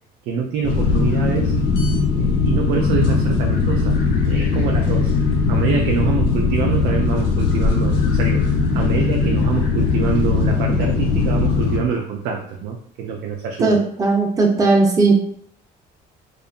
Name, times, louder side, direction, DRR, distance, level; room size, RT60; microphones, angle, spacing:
voice 1, 0.3-1.5 2.1-4.0 4.3-5.1 5.5-13.8, right 6 dB, 75° right, 2 dB, 0.4 m, -25 dB
sound 1, 0.6-11.8, left 4 dB, 75° left, 0.6 m, -19 dB
voice 2, 13.6-15.2, right 3 dB, 20° right, 0 dB, 0.5 m, -16 dB
2.8 x 2.4 x 2.3 m, 0.63 s
cardioid pair, 110°, 17 cm